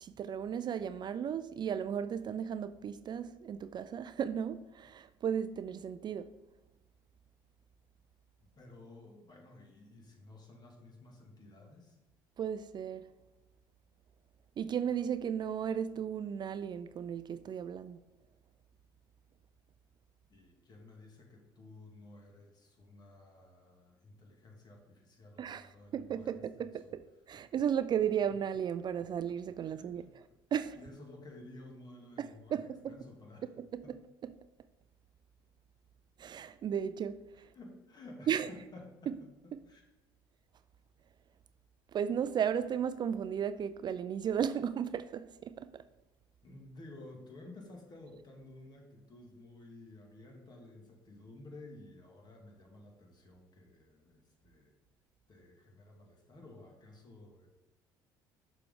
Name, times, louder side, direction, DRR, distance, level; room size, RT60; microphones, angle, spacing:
voice 1, 0.0-6.3 12.4-13.1 14.6-18.0 25.4-30.0 30.5-30.8 32.2-33.0 33.6-34.0 34.2-34.3 36.2-37.5 38.3-38.5 39.1-39.2 39.5-39.6 41.9-45.8, right 8 dB, 45° right, 0.3 m, -35 dB
voice 2, 8.4-12.0 20.3-26.3 26.6-26.9 29.6-30.1 30.8-33.5 33.8-33.9 37.5-39.8 46.4-54.7 55.3-57.5, left 2 dB, 40° left, 2.2 m, -53 dB
6.6 x 6.1 x 3.8 m
hypercardioid pair, 70°, 11 cm